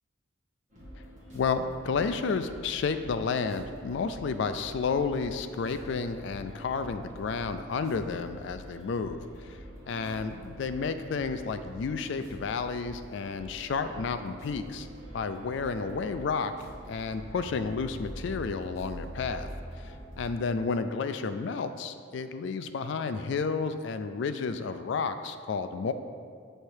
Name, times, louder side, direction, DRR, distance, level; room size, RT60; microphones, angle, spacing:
sound 1, 0.7-20.4, equal, 35° right, 1.5 m, -45 dB
voice 1, 1.3-9.6 9.9-14.9 15.1-16.5 16.9-19.5 19.8-25.9, left 5 dB, 60° left, 9 dB, 0.3 m, -31 dB
7.1 x 3.3 x 4.5 m, 2.1 s
head